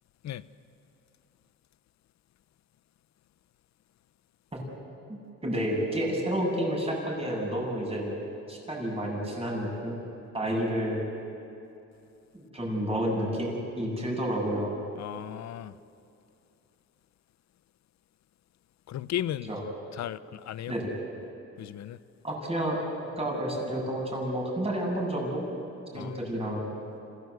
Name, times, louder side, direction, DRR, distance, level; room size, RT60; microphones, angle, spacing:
voice 1, 5.1-8.1 8.5-10.0 10.3-11.0 12.3-14.7 19.5-19.6 20.7-20.9 22.2-22.8 23.2-25.4 25.9-26.7, right 1 dB, 20° right, 8.0 m, -30 dB
voice 2, 15.0-15.7 18.9-19.5 20.0-20.7 21.6-22.0 25.9-26.3, left 11 dB, 65° left, 0.8 m, -35 dB
27.0 x 16.5 x 8.3 m
cardioid pair, 90°, 30 cm